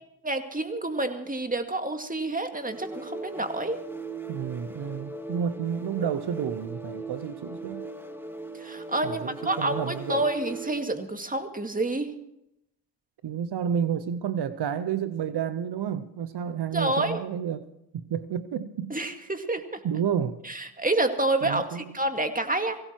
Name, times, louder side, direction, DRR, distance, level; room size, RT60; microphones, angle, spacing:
voice 1, 0.2-3.8 8.6-12.1 16.7-17.2 18.9-19.8 20.4-22.8, right 2 dB, 20° right, 2.2 m, -28 dB
sound 1, 2.6-11.0, right 2 dB, 5° right, 1.8 m, -39 dB
voice 2, 4.3-7.9 9.0-10.2 13.2-17.7 17.9-19.0 19.8-20.4 21.4-21.9, right 8 dB, 75° right, 0.8 m, -30 dB
18.0 x 16.5 x 4.6 m
cardioid pair, 50°, 40 cm